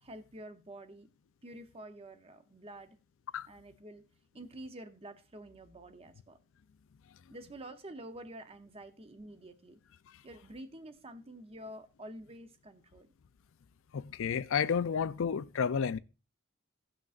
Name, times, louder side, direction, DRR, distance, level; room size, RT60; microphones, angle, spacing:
voice 1, 0.0-1.1 1.4-3.0 3.5-4.0 4.3-6.4 7.3-9.8 10.2-13.1, right 1 dB, 25° right, 0.7 m, -48 dB
voice 2, 13.9-16.0, left 7 dB, 60° left, 0.4 m, -31 dB
17.0 x 5.9 x 2.5 m
head